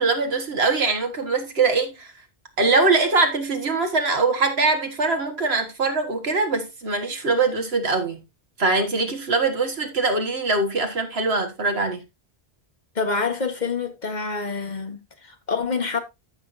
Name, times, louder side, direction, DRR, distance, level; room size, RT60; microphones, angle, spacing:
voice 1, 0.0-2.1 2.6-8.2 8.6-12.0, right 3 dB, 75° right, 2.1 m, -22 dB
voice 2, 12.9-16.0, left 4 dB, 45° left, 1.5 m, -27 dB
14.5 x 6.0 x 2.7 m
omnidirectional pair, 1.1 m